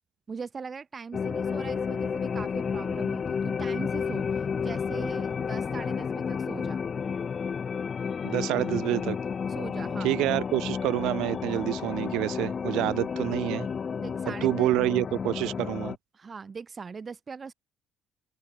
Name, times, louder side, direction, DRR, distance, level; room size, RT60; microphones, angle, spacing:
voice 1, 0.3-6.8 9.5-10.1 14.0-14.7 16.1-17.5, right 5 dB, 30° right, 3.1 m, -40 dB
sound 1, 1.1-16.0, left 6 dB, 35° left, 4.4 m, -31 dB
voice 2, 8.2-9.2 10.0-13.7 14.3-15.9, right 17 dB, 85° right, 2.9 m, -27 dB
cardioid pair, 125°, 0 cm